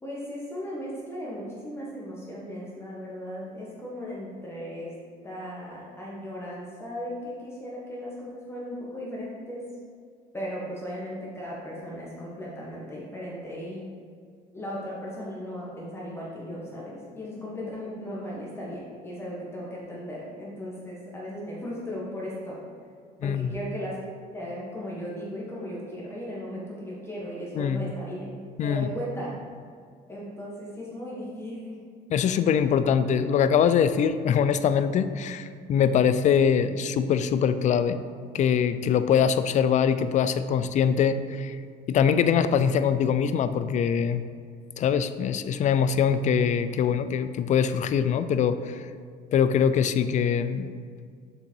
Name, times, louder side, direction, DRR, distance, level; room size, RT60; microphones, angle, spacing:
voice 1, 0.0-4.9 5.2-9.7 10.3-13.9 14.5-22.6 23.2-24.0 24.3-28.3 28.6-29.4 30.1-31.8, equal, 15° left, -6 dB, 1.3 m, -36 dB
voice 2, 23.2-23.5 27.6-27.9 28.6-28.9 32.1-38.0 38.3-41.6 41.9-44.2 44.8-48.8 49.3-50.7, left 7 dB, 45° left, 11 dB, 0.4 m, -23 dB
6.7 x 3.8 x 4.6 m, 2.1 s
cardioid pair, 110°, 17 cm